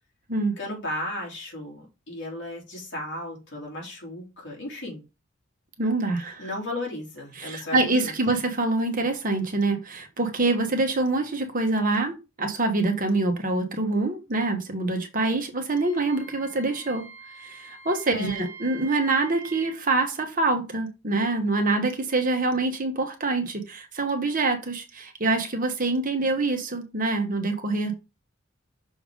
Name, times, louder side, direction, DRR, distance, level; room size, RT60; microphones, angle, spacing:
voice 1, 0.6-5.0 6.2-8.4 18.1-18.4, left 1 dB, 60° left, 2.9 m, -35 dB
voice 2, 5.8-6.5 7.4-17.1 17.4-28.0, right 2 dB, 40° right, 1.2 m, -25 dB
Wind instrument woodwind instrument, 15.7-19.8, right 4 dB, 30° left, 2.9 m, -45 dB
6.3 x 3.5 x 5.0 m
head